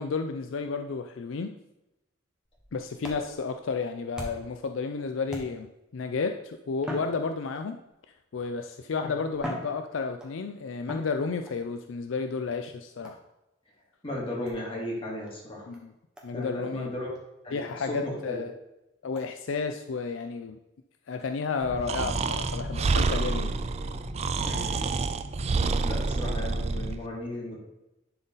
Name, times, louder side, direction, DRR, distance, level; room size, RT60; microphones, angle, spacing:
voice 1, 0.0-1.5 2.7-5.7 5.9-7.8 8.3-13.1 15.7-15.9 16.2-16.9 17.5-18.5 19.0-20.6 21.1-23.5, left 4 dB, 75° left, 7 dB, 0.4 m, -32 dB
sound 1, 2.4-4.6 5.3-5.9 6.8-7.9 8.7-8.8 9.3-10.4 10.9-11.6 13.0-13.3 14.4-14.6 15.3-15.4 15.7-15.8 16.2-16.3 16.6-16.7 17.1-17.2 17.7-17.8 18.2-18.3 19.1-19.3, equal, 5° right, 1.3 m, -41 dB
voice 2, 14.0-15.7 16.3-17.1 17.4-18.4 24.4-24.9 25.8-27.6, left 1 dB, 30° left, -4 dB, 2.6 m, -35 dB
sound 2, 21.6-26.8, equal, 90° right, 2.6 m, -38 dB
Breathing, 21.9-27.0, right 4 dB, 35° right, 0.3 m, -28 dB
11.0 x 4.0 x 3.9 m, 0.93 s
head